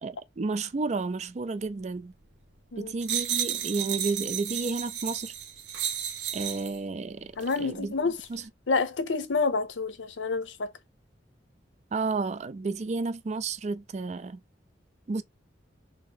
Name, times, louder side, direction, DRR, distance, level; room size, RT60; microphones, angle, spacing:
voice 1, 0.0-2.1 2.8-5.3 6.3-7.3 7.6-7.9 8.3-8.4 11.9-14.4 15.1-15.2, right 3 dB, 40° right, 0.4 m, -31 dB
sound 1, 3.0-6.8 7.4-7.6, right 9 dB, 65° right, 0.9 m, -32 dB
voice 2, 7.4-8.2 8.7-10.7, left 4 dB, 85° left, 0.7 m, -28 dB
2.9 x 2.6 x 3.9 m
head